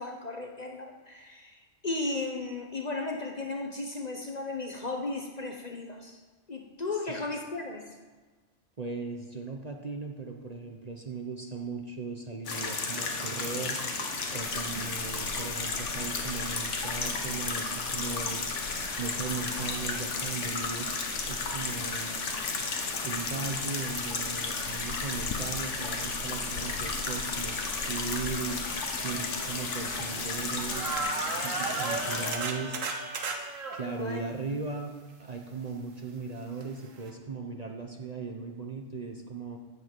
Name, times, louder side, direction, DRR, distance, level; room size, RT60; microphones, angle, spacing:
voice 1, 0.0-6.2 6.5-8.0 32.1-32.4 33.8-34.2, left 3 dB, 35° left, 2 dB, 0.9 m, -35 dB
voice 2, 8.8-13.8 14.3-18.4 19.0-20.9 21.3-22.1 23.0-31.0 31.4-32.8 33.7-34.9 35.2-39.6, right 4 dB, 35° right, 2 dB, 0.8 m, -37 dB
sound 1, 12.5-32.3, left 4 dB, 70° left, 1.5 m, -33 dB
sound 2, 14.4-31.0, left 5 dB, 85° left, 1.3 m, -43 dB
sound 3, 28.6-30.4 30.7-33.8 36.6-36.7 37.0-37.1, right 4 dB, 90° right, 1.5 m, -35 dB
15.0 x 5.7 x 6.0 m, 1.3 s
omnidirectional pair, 1.3 m